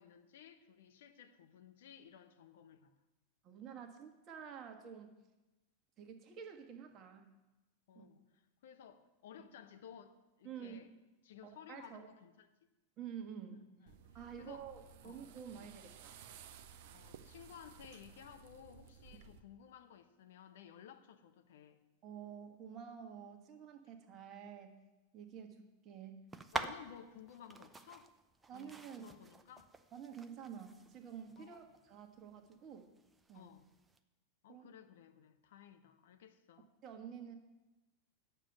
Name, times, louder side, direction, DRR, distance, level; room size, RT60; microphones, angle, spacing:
voice 1, 0.0-2.9 7.9-10.9 11.2-12.3 13.8-14.0 14.4-14.7 15.0-15.3 15.5-15.7 16.9-21.8 26.5-28.1 28.5-29.7 31.4-31.6 33.3-33.7 34.4-36.7, left 9 dB, 55° left, 7 dB, 1.0 m, -56 dB
voice 2, 3.4-5.2 6.0-7.3 7.9-8.1 10.4-10.9 11.4-12.1 13.0-13.7 14.1-16.2 22.0-24.8 25.1-26.2 28.5-29.1 29.9-32.9 33.3-33.5 34.5-34.7 36.8-37.4, right 8 dB, 30° right, 4 dB, 1.5 m, -49 dB
sound 1, 13.9-19.4, right 7 dB, 50° right, 0.8 m, -57 dB
sound 2, 26.3-34.0, right 3 dB, 15° right, 0.7 m, -48 dB
9.1 x 6.9 x 8.8 m, 1.0 s
figure-of-eight pair, 90°, 0 cm